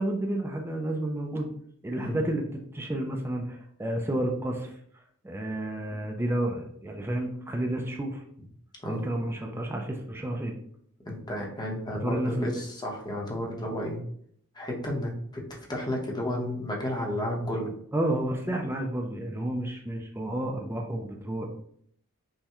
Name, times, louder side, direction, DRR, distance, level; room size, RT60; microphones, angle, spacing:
voice 1, 0.0-1.5 1.8-4.7 5.2-8.2 8.9-10.6 11.9-12.6 17.9-21.5, right 1 dB, 10° right, 1 dB, 0.4 m, -31 dB
voice 2, 11.1-14.0 14.5-17.7, left 1 dB, 20° left, -1 dB, 0.8 m, -32 dB
5.5 x 2.2 x 2.9 m, 0.66 s
head